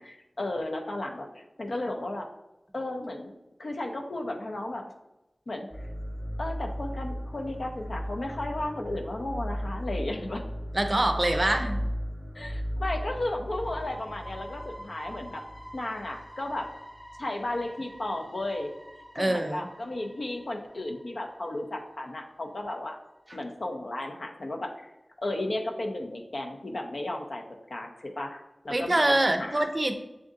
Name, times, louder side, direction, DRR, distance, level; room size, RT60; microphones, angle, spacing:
voice 1, 0.0-2.3 2.7-3.3 3.6-4.8 5.5-5.7 6.4-10.4 11.3-11.7 12.3-15.4 15.7-16.7 17.2-18.7 19.1-23.0 23.3-24.7 25.2-27.4 27.7-29.7, left 1 dB, 75° left, 1 dB, 0.6 m, -34 dB
sound 1, 5.7-22.4 22.7-22.9 23.3-23.4, equal, 10° right, 0.8 m, -37 dB
voice 2, 10.7-11.8 19.2-19.7 28.7-29.9, right 1 dB, 35° right, 7 dB, 0.5 m, -25 dB
7.1 x 2.6 x 2.6 m, 0.95 s
wide cardioid pair, 55°, 0 cm